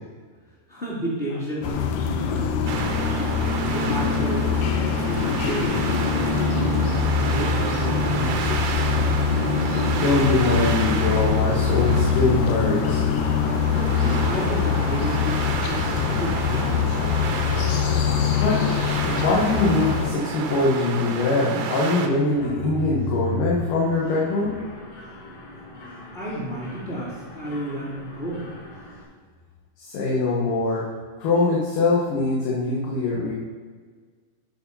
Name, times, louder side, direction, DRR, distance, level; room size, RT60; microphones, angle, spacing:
voice 1, 0.7-3.2 3.6-4.4 5.0-6.8 7.2-9.3 13.7-17.0 26.1-28.5, equal, 20° left, -8 dB, 1.7 m, -32 dB
sound 1, 1.6-20.1, left 6 dB, 90° left, 2.4 m, -23 dB
sound 2, 2.7-22.1, right 6 dB, 80° right, 1.6 m, -31 dB
voice 2, 8.7-13.0 18.2-18.7 18.9-24.6 29.8-30.8 31.2-33.3, left 3 dB, 70° left, -5 dB, 2.7 m, -23 dB
Mechanisms, 22.3-29.0, left 1 dB, 50° left, 1.3 m, -36 dB
9.2 x 4.8 x 5.5 m, 1.5 s
omnidirectional pair, 4.1 m